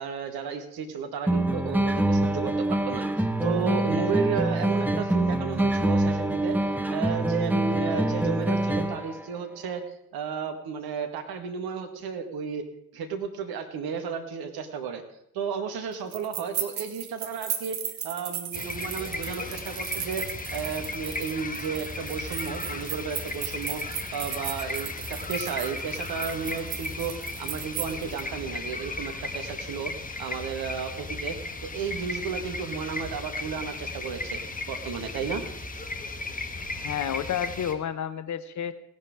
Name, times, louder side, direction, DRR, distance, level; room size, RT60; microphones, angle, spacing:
voice 1, 0.0-9.8 10.1-12.6 12.9-15.0 15.3-17.8 18.0-20.3 20.5-29.9 30.2-34.4 34.7-35.4, right 6 dB, 55° right, 6 dB, 1.9 m, -33 dB
sound 1, 1.3-9.2, right 1 dB, 5° right, 0.9 m, -25 dB
sound 2, 16.1-28.2, right 9 dB, 75° right, 1.1 m, -36 dB
sound 3, 18.5-37.7, left 3 dB, 20° left, 1.6 m, -36 dB
voice 2, 36.7-38.7, left 9 dB, 40° left, 13 dB, 0.9 m, -31 dB
17.5 x 10.5 x 3.7 m, 0.76 s
figure-of-eight pair, 45°, 45 cm